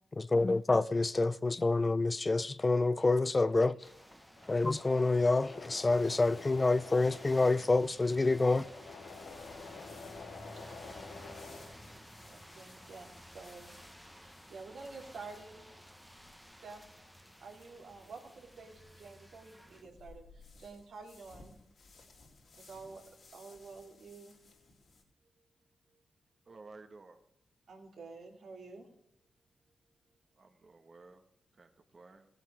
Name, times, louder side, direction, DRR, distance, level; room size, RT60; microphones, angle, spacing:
voice 1, 0.2-3.8 4.5-8.7, left 3 dB, 35° left, 0.4 m, -27 dB
Engine / Mechanisms, 3.0-12.3 12.7-15.0 15.3-16.0, left 4 dB, 85° left, 1.8 m, -50 dB
sound 1, 3.8-19.8, equal, ahead, 1.1 m, -54 dB
sound 2, 8.2-25.0, left 3 dB, 65° left, 3.9 m, -61 dB
voice 2, 12.2-13.8 14.2-15.8 16.6-21.6 22.6-23.0 23.3-24.3 27.7-28.9, right 4 dB, 75° right, 2.5 m, -50 dB
voice 3, 26.5-27.2 30.4-31.2 31.6-32.3, right 3 dB, 50° right, 1.4 m, -54 dB
16.5 x 7.8 x 4.8 m
supercardioid pair, 45°, 0 cm